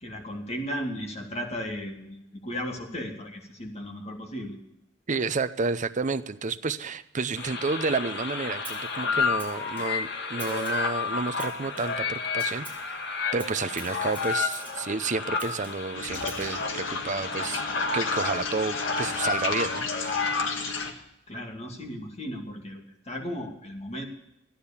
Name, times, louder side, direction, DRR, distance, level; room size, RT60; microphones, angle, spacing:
voice 1, 0.0-4.6 20.8-24.1, equal, 35° left, 2 dB, 2.3 m, -36 dB
voice 2, 5.1-17.7 17.9-20.2, right 4 dB, 40° right, 11 dB, 0.6 m, -30 dB
sound 1, 7.4-20.9, left 4 dB, 60° left, 1.7 m, -31 dB
Snare drum, 8.6-9.0 9.4-10.1 10.4-11.0 11.4-12.1 12.4-12.9 13.4-14.9 15.4-16.6, right 4 dB, 10° right, 4.0 m, -46 dB
sound 2, 15.9-20.9, left 4 dB, 85° left, 1.7 m, -34 dB
14.5 x 10.0 x 7.0 m, 0.85 s
head